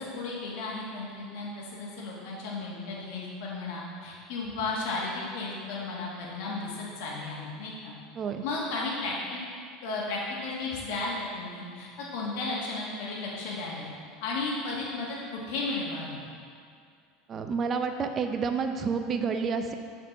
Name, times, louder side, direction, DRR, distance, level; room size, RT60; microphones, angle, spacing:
voice 1, 0.0-7.9 8.4-9.4 9.8-13.9 14.2-16.2, left 3 dB, 70° left, -5 dB, 1.6 m, -34 dB
voice 2, 17.3-19.7, right 5 dB, 30° right, 6 dB, 0.5 m, -29 dB
7.0 x 4.4 x 5.7 m, 2.3 s
supercardioid pair, 150°, 0 cm